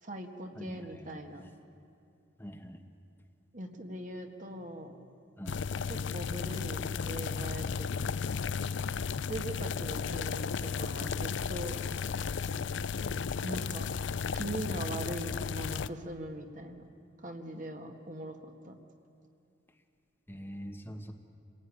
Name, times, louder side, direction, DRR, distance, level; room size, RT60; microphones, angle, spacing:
voice 1, 0.0-1.5 3.5-5.0 5.9-8.1 9.3-11.8 13.4-13.9 14.3-16.9 17.2-18.8, right 1 dB, 45° right, 4 dB, 1.8 m, -41 dB
voice 2, 0.6-1.2 2.4-2.8 5.4-5.8 20.3-21.1, equal, 10° left, 4 dB, 1.2 m, -44 dB
sound 1, 5.5-15.9, left 6 dB, 70° left, 0.5 m, -34 dB
27.5 x 18.0 x 9.6 m, 2.5 s
head